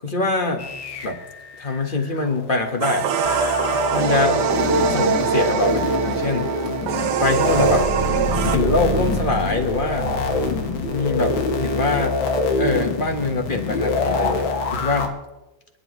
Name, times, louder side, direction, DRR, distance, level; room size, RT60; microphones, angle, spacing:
voice 1, 0.0-0.7 1.0-1.2 1.6-3.1 3.9-4.4 4.9-6.5 7.2-7.9 8.5-10.1 10.9-12.2 12.6-15.1, left 3 dB, 25° left, 4 dB, 1.6 m, -23 dB
sound 1, 0.6-15.1, left 4 dB, 75° left, 2.1 m, -26 dB
sound 2, 2.8-8.6, right 6 dB, 65° right, 1.3 m, -22 dB
sound 3, 7.5-12.3, right 2 dB, 85° right, 1.8 m, -29 dB
28.0 x 11.0 x 3.2 m, 1.0 s
omnidirectional pair, 2.2 m